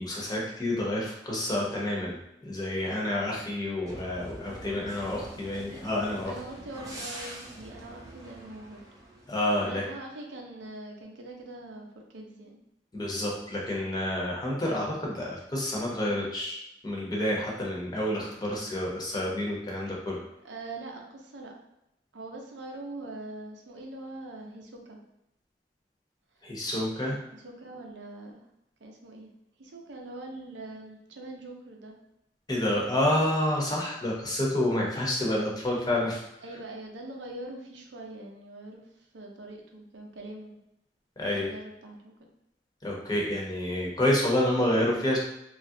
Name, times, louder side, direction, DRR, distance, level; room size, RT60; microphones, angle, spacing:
voice 1, 0.0-2.2 2.4-6.3 9.3-9.8 12.9-20.2 26.4-27.2 32.5-36.2 41.2-41.5 42.8-45.2, left 1 dB, 20° left, -3 dB, 0.7 m, -29 dB
sound 1, 3.9-9.4, right 1 dB, 20° right, 0.5 m, -44 dB
voice 2, 6.3-8.8 9.6-12.6 20.4-21.5 22.1-25.0 27.1-28.4 28.8-29.3 29.6-32.0 36.4-40.6 41.3-42.3, right 2 dB, 85° right, 1 dB, 0.6 m, -43 dB
3.1 x 2.4 x 2.6 m, 0.84 s
head